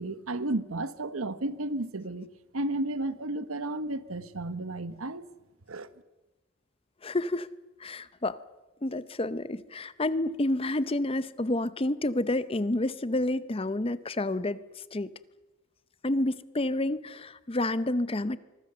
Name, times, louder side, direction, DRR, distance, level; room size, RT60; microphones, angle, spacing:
voice 1, 0.0-5.3 5.7-5.9, right 2 dB, 75° right, 1.2 m, -33 dB
voice 2, 7.0-7.5 7.8-8.4 8.8-14.6 14.9-15.1 16.0-18.4, left 1 dB, 25° left, 0.7 m, -29 dB
25.0 x 23.0 x 6.9 m
head